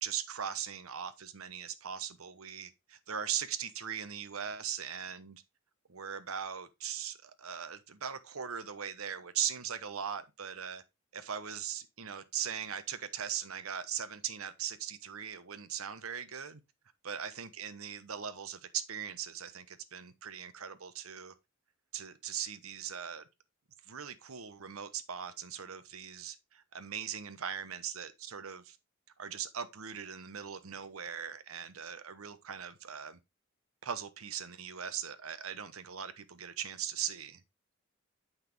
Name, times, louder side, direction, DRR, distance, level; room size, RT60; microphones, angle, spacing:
voice 1, 0.0-5.4 5.9-10.8 11.1-16.6 17.0-21.3 21.9-23.2 23.8-28.8 29.2-33.2 33.8-37.4, right 8 dB, 90° right, 1.0 m, -39 dB
8.1 x 5.7 x 3.4 m
head